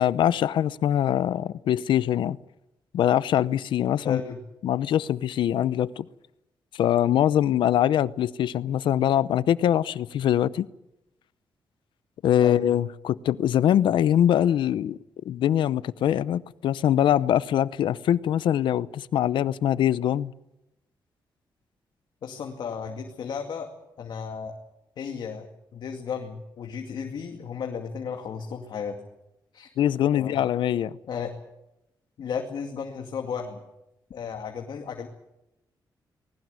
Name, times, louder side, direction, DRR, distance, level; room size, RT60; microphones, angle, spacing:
voice 1, 0.0-2.4 2.9-4.2 4.6-6.0 6.7-10.7 12.2-15.0 15.2-20.3 29.8-30.9, left 10 dB, 90° left, 0.7 m, -23 dB
voice 2, 4.0-4.4 12.4-12.6 22.2-23.7 24.0-24.6 25.0-29.0 29.5-29.7 30.1-30.4 31.1-31.3 32.2-33.6 34.1-35.1, left 6 dB, 70° left, 2.3 m, -34 dB
20.0 x 18.5 x 9.6 m
cardioid pair, 120°, 8 cm